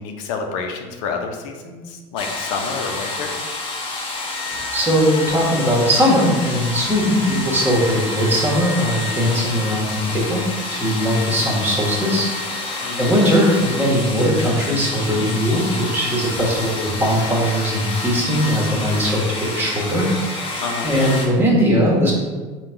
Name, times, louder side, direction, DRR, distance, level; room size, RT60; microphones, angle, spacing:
voice 1, 0.0-3.3 12.8-13.1 20.6-20.9, left 5 dB, 80° left, 3 dB, 0.6 m, -29 dB
sound 1, 2.2-21.3, left 2 dB, 35° left, 0.9 m, -28 dB
voice 2, 4.7-10.4 10.7-22.1, equal, 15° right, -4 dB, 1.2 m, -19 dB
3.8 x 2.3 x 4.5 m, 1.4 s
supercardioid pair, 125°, 16 cm